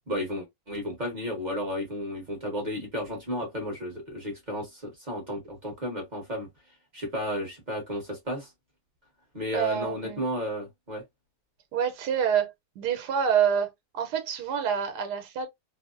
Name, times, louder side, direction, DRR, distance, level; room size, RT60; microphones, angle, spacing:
voice 1, 0.1-6.5 6.9-8.5 9.3-11.0, equal, 35° right, 0.8 m, -33 dB
voice 2, 9.5-10.2 11.7-15.5, right 8 dB, 85° right, 1.2 m, -27 dB
2.7 x 2.0 x 2.3 m
omnidirectional pair, 1.7 m